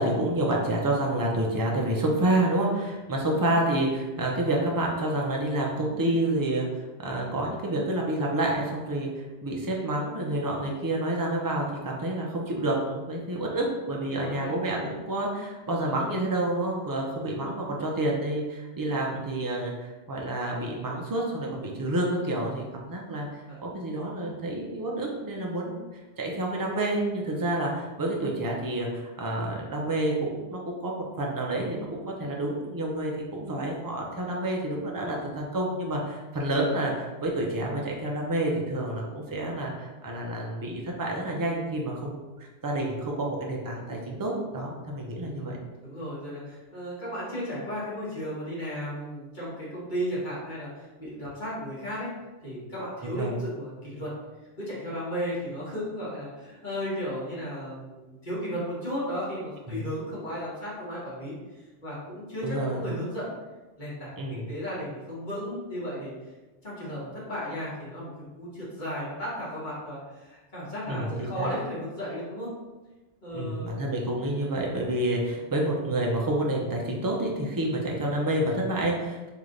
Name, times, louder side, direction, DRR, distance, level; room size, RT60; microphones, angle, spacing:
voice 1, 0.0-25.8 26.2-45.6 53.1-53.4 59.7-59.8 62.4-62.8 64.2-64.4 70.9-71.5 73.3-79.3, right 1 dB, 30° right, -1 dB, 0.4 m, -29 dB
voice 2, 14.1-14.6 23.5-23.6 45.2-45.5 45.8-52.1 52.4-54.2 54.6-61.4 61.8-63.3 63.8-66.1 66.6-68.1 68.4-72.5 73.2-73.8, equal, 40° left, -8 dB, 1.5 m, -35 dB
3.2 x 2.8 x 3.7 m, 1.2 s
omnidirectional pair, 1.2 m